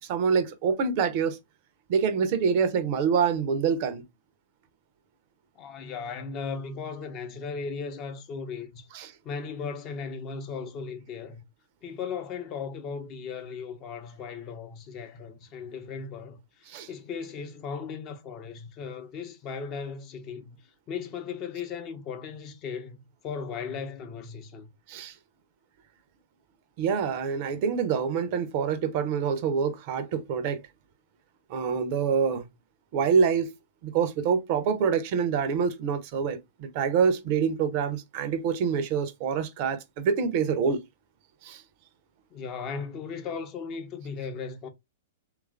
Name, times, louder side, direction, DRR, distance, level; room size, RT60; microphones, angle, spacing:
voice 1, 0.1-1.4 1.9-4.0 8.9-9.1 16.7-16.9 24.9-25.1 26.8-30.6 31.5-32.5 32.9-33.5 33.8-40.8 41.4-41.6, right 6 dB, 45° right, 0.5 m, -26 dB
voice 2, 5.6-8.9 9.2-11.4 11.8-20.6 20.9-23.0 23.2-24.7 42.3-44.7, left 5 dB, 35° left, 0.6 m, -37 dB
3.0 x 2.3 x 2.3 m
figure-of-eight pair, 105°, 0 cm